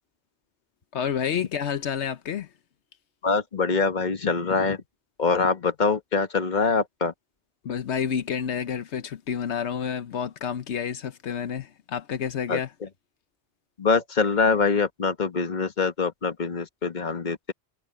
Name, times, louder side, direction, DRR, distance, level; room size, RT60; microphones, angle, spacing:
voice 1, 0.9-2.5 7.6-12.7, left 8 dB, 80° left, 1.1 m, -29 dB
voice 2, 3.2-4.8 5.2-7.1 12.5-12.6 13.8-17.5, left 4 dB, 45° left, 1.5 m, -24 dB
omnidirectional pair, 1.1 m